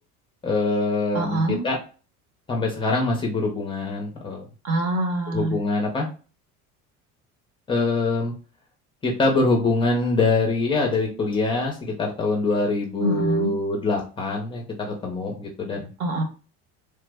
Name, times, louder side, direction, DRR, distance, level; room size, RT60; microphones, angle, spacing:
voice 1, 0.4-1.8 2.5-4.5 5.3-6.1 7.7-8.3 9.0-15.9, left 3 dB, 15° left, 0 dB, 0.5 m, -24 dB
voice 2, 1.1-1.6 4.6-5.6 13.0-13.6 16.0-16.2, right 1 dB, 60° right, 4 dB, 1.0 m, -24 dB
3.3 x 2.0 x 3.3 m, 0.36 s
cardioid pair, 165°, 30 cm